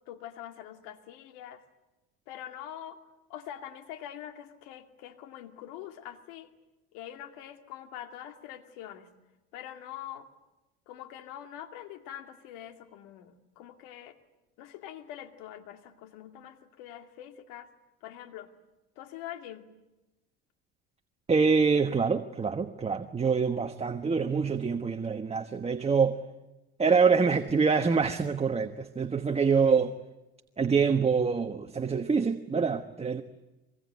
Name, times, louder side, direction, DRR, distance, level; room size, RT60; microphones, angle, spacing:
voice 1, 0.1-1.6 2.3-3.0 3.3-6.5 6.9-9.1 9.5-10.3 10.9-14.2 14.6-17.7 18.0-18.5 19.0-19.7, left 11 dB, 80° left, 2.4 m, -44 dB
voice 2, 21.3-26.2 26.8-29.9 30.6-33.2, right 5 dB, 20° right, 1.3 m, -25 dB
24.5 x 23.5 x 9.5 m
supercardioid pair, 95°, 31 cm